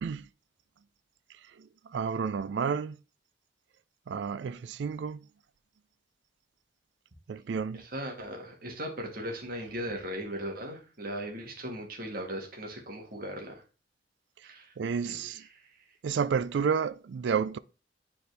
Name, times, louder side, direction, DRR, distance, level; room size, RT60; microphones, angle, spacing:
voice 1, 1.3-3.0 4.1-5.3 7.3-7.8 14.4-14.5 14.8-15.4 16.0-17.6, right 6 dB, 70° right, 0.4 m, -31 dB
voice 2, 7.7-13.6 14.4-14.7 15.0-15.8, equal, 55° right, 1.8 m, -38 dB
9.3 x 4.3 x 3.3 m
head